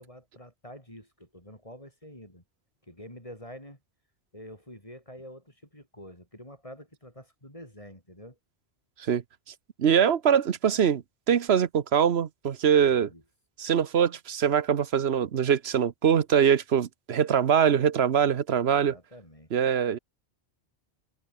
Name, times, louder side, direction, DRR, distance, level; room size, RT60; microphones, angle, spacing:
voice 1, 0.0-2.4 2.8-3.8 4.3-8.4 12.8-13.2 18.9-19.5, equal, 30° left, 8.0 m, -47 dB
voice 2, 9.8-13.1 13.6-18.9 19.5-20.0, right 8 dB, 70° right, 1.2 m, -23 dB
omnidirectional pair, 1.1 m